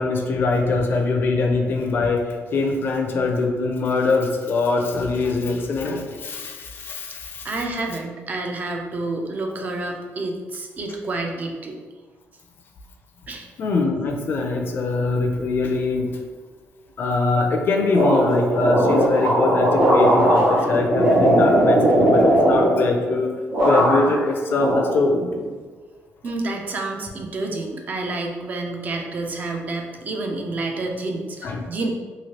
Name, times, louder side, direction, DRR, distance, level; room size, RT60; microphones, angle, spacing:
voice 1, 0.0-7.5 13.6-16.1 17.0-25.3 31.4-31.6, left 3 dB, 45° left, 3 dB, 0.4 m, -23 dB
voice 2, 7.4-11.8 13.3-13.5 26.2-31.9, right 2 dB, 35° right, 3 dB, 0.4 m, -29 dB
sound 1, 17.9-23.2 23.5-24.2 24.6-25.5, right 1 dB, 85° right, 1.5 m, -18 dB
3.0 x 2.7 x 2.8 m, 1.4 s
cardioid pair, 165°, 5 cm